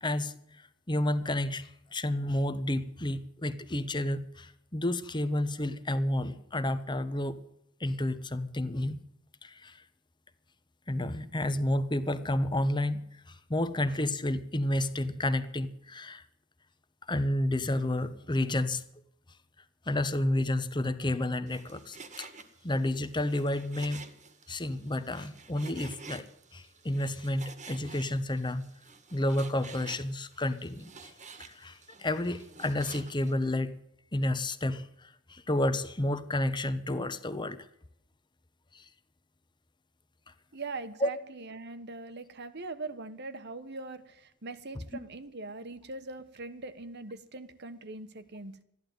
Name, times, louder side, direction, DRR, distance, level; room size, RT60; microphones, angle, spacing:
voice 1, 0.0-7.4 7.8-9.0 9.4-9.8 10.9-16.2 17.1-18.8 19.9-22.3 22.6-24.0 24.5-26.3 26.5-28.6 29.1-31.1 31.4-33.8 34.1-37.6 38.7-38.9 41.0-41.1, left 1 dB, 20° left, 13 dB, 1.0 m, -31 dB
Frying (food), 21.5-33.3, right 4 dB, 35° right, 1.6 m, -50 dB
voice 2, 40.5-48.6, right 3 dB, 50° right, 11 dB, 1.2 m, -41 dB
14.0 x 11.0 x 9.3 m, 0.76 s
head